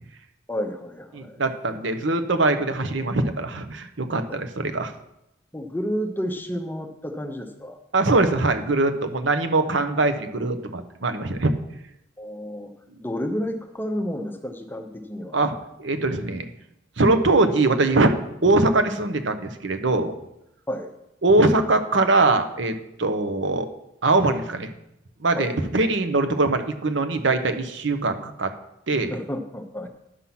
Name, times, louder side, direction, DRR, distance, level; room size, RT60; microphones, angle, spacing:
voice 1, 0.5-1.4 4.3-4.4 5.5-7.8 12.2-12.7 13.0-15.4 20.7-20.9 25.3-25.5 29.1-29.9, equal, 10° left, 5 dB, 0.7 m, -31 dB
voice 2, 1.1-4.9 7.9-11.5 15.3-15.5 15.8-16.4 17.0-18.1 18.4-20.1 21.2-23.7 24.0-24.7 25.2-28.5 28.9-29.1, right 2 dB, 70° right, 8 dB, 0.9 m, -22 dB
10.0 x 5.7 x 5.9 m, 0.84 s
head